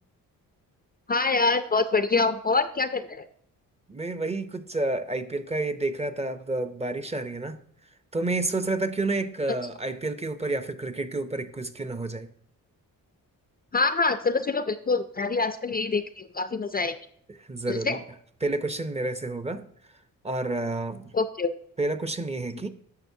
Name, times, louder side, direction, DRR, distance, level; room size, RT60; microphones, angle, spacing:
voice 1, 1.1-3.3 13.7-16.9 17.7-18.0 21.1-21.5, left 3 dB, 25° left, 10 dB, 0.4 m, -25 dB
voice 2, 3.9-7.6 8.1-12.3 17.5-18.0 18.4-19.6 20.2-21.1 21.8-22.7, right 2 dB, 20° right, 10 dB, 0.6 m, -29 dB
10.5 x 6.4 x 2.7 m, 0.67 s
cardioid pair, 85°, 34 cm